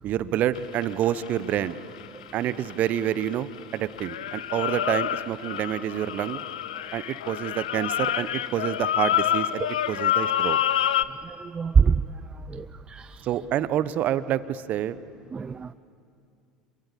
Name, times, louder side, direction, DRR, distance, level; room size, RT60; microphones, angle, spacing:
voice 1, 0.0-1.8 2.3-6.4 6.9-10.6 13.2-15.0, right 11 dB, 45° right, 16 dB, 1.0 m, -28 dB
sound 1, 0.6-3.6 4.0-11.0, left 11 dB, 75° left, 0.7 m, -27 dB
voice 2, 11.2-12.0 12.5-13.3 15.3-15.7, right 6 dB, 25° right, 13 dB, 0.5 m, -24 dB
27.5 x 23.0 x 8.6 m, 2.5 s
hypercardioid pair, 75°, 4 cm